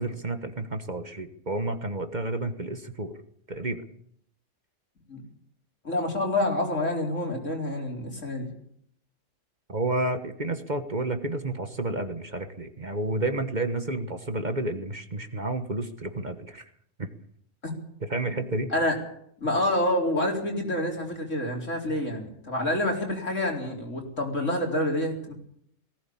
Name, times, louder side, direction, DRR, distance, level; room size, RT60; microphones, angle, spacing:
voice 1, 0.0-3.2 3.5-3.8 9.7-16.6 17.0-17.1 18.1-18.7, right 2 dB, 35° right, 8 dB, 1.5 m, -30 dB
voice 2, 5.8-8.5 17.6-17.7 18.3-18.4 18.7-19.0 19.4-25.3, left 1 dB, 75° left, 1 dB, 4.6 m, -27 dB
19.0 x 16.5 x 8.6 m, 0.69 s
omnidirectional pair, 1.3 m